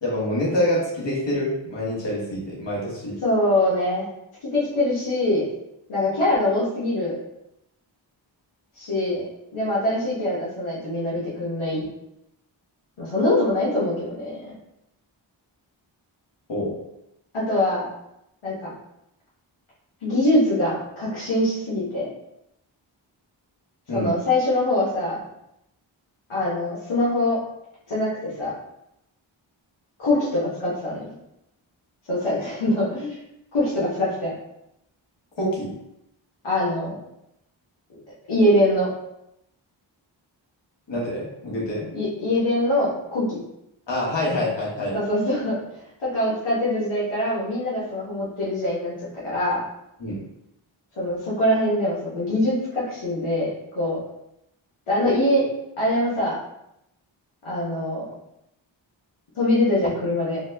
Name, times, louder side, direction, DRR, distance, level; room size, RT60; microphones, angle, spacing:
voice 1, 0.0-3.2 16.5-16.8 23.9-24.1 35.4-35.7 40.9-41.9 43.9-44.9 50.0-50.2, left 1 dB, 65° left, -5 dB, 1.3 m, -26 dB
voice 2, 3.2-4.1 4.4-5.4 5.9-7.2 8.8-9.3 9.5-11.9 13.0-14.4 17.3-17.9 18.4-18.7 20.0-22.1 23.9-25.2 26.3-27.4 27.9-28.5 30.0-31.1 32.1-33.2 33.5-34.3 36.4-37.0 38.3-38.9 41.9-43.4 44.9-45.6 46.0-48.9 49.2-49.6 51.0-54.0 54.9-55.5 55.8-56.4 57.4-58.1 59.3-60.4, left 1 dB, 90° left, -8 dB, 1.0 m, -23 dB
4.0 x 2.1 x 2.6 m, 0.83 s
wide cardioid pair, 65°, 48 cm